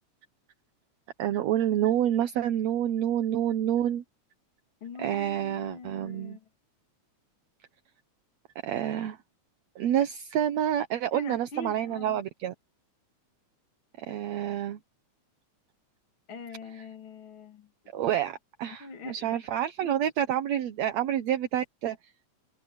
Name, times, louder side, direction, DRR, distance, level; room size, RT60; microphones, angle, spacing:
voice 1, 1.2-4.0 5.0-6.4 8.6-9.2 9.8-12.5 14.1-14.8 17.9-22.0, right 10 dB, 70° right, 2.2 m, -28 dB
voice 2, 4.8-6.4 11.1-12.2 16.3-17.7 18.8-19.4 19.8-20.0, left 3 dB, 45° left, 3.0 m, -42 dB
omnidirectional pair, 3.3 m